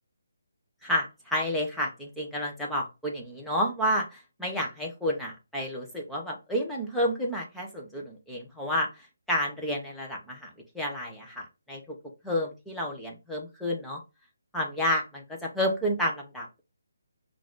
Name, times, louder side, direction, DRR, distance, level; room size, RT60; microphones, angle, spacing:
voice 1, 0.8-10.5 10.7-12.0 12.2-14.0 14.5-16.6, equal, ahead, -3 dB, 0.8 m, -30 dB
5.6 x 2.5 x 3.8 m, 0.27 s
hypercardioid pair, 170°, 0 cm